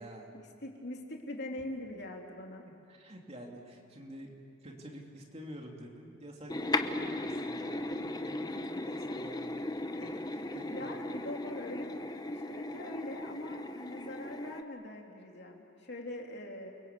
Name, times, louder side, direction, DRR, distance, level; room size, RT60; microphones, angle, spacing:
voice 1, 0.3-2.6 10.7-11.9 12.2-16.7, left 1 dB, 50° left, 1 dB, 3.2 m, -42 dB
voice 2, 2.9-4.4 4.6-9.6 10.0-11.0, equal, 30° right, 0 dB, 3.0 m, -48 dB
sound 1, 6.5-14.6, left 2 dB, 20° left, 0.8 m, -37 dB
30.0 x 22.5 x 8.4 m, 2.6 s
head